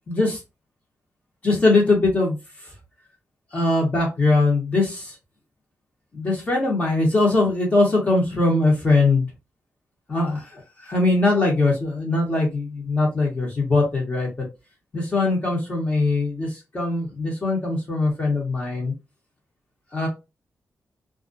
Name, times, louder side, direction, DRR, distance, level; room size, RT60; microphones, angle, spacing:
voice 1, 0.1-0.4 1.4-2.4 3.5-5.2 6.1-9.3 10.1-14.4 14.9-18.9 19.9-20.1, left 2 dB, 30° left, -2 dB, 1.0 m, -21 dB
2.3 x 2.1 x 2.4 m, 0.26 s
wide cardioid pair, 120°, 5 cm